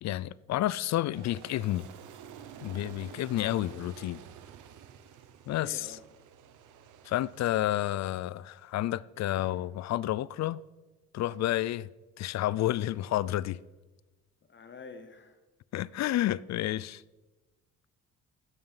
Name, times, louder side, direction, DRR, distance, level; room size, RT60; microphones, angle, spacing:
voice 1, 0.0-1.9 2.6-4.2 5.5-6.0 7.0-10.6 11.1-11.9 12.2-13.6 15.7-17.0, left 14 dB, 60° left, 0.4 m, -30 dB
Aircraft, 1.1-7.8, right 8 dB, 85° right, 1.0 m, -50 dB
voice 2, 5.5-6.0 9.3-9.6 14.5-15.4, left 4 dB, 40° left, 1.0 m, -48 dB
12.0 x 7.9 x 5.8 m
cardioid pair, 90°, 30 cm